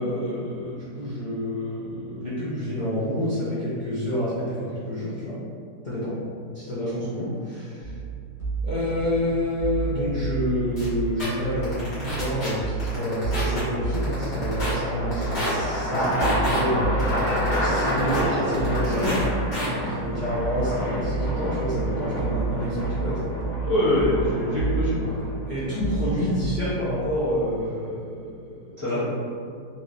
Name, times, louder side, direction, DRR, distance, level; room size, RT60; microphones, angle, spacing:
voice 1, 0.0-5.4 5.8-6.1 6.5-7.9 8.6-19.3 19.7-23.3 25.5-28.6 28.9-29.0, equal, 70° left, -11 dB, 0.4 m, -28 dB
sound 1, 7.8-26.9, right 3 dB, 35° right, 0.5 m, -31 dB
sound 2, 9.1-9.5 13.3-27.9, equal, 85° left, 1.2 m, -30 dB
sound 3, 10.8-10.9 11.2-11.3 11.6-12.5 12.8-13.6 13.9-14.7 15.1-15.5 15.9-16.6 17.0-18.2 18.5-19.2 19.5-19.7, equal, 45° left, 1.4 m, -30 dB
voice 2, 23.6-25.1 28.8-29.0, left 1 dB, 10° right, -12 dB, 1.0 m, -23 dB
2.9 x 2.9 x 2.5 m, 2.3 s
omnidirectional pair, 1.7 m